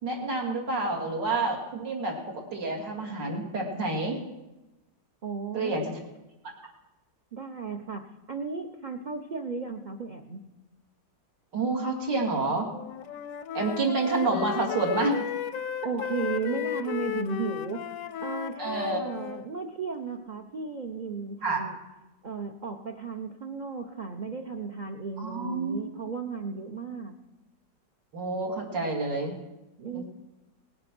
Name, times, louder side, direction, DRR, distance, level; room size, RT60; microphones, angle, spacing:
voice 1, 0.0-4.2 5.5-6.0 11.5-12.7 13.5-15.2 18.6-19.1 21.4-21.6 25.2-25.9 28.1-29.3 29.9-30.0, right 3 dB, 80° right, 0 dB, 2.9 m, -28 dB
voice 2, 5.2-5.8 7.3-10.4 15.8-17.8 18.2-21.8 22.2-27.1 29.8-30.0, right 5 dB, 55° right, 3 dB, 0.5 m, -35 dB
Wind instrument woodwind instrument, 12.7-19.5, left 10 dB, 65° left, 0.8 m, -34 dB
18.5 x 7.7 x 6.1 m, 1.0 s
omnidirectional pair, 1.9 m